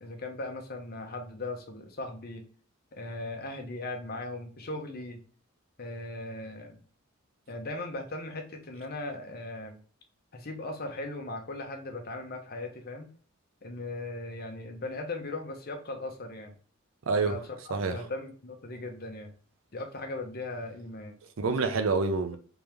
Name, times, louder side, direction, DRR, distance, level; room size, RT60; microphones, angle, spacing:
voice 1, 0.0-2.4 2.9-5.2 5.8-6.8 7.5-9.8 10.3-13.1 13.6-16.5 17.2-19.3 19.7-21.2, left 2 dB, 45° left, 0.8 m, -38 dB
voice 2, 17.1-17.4 17.7-18.1 21.4-22.4, right 4 dB, 70° right, 0.6 m, -27 dB
3.5 x 3.0 x 3.5 m
head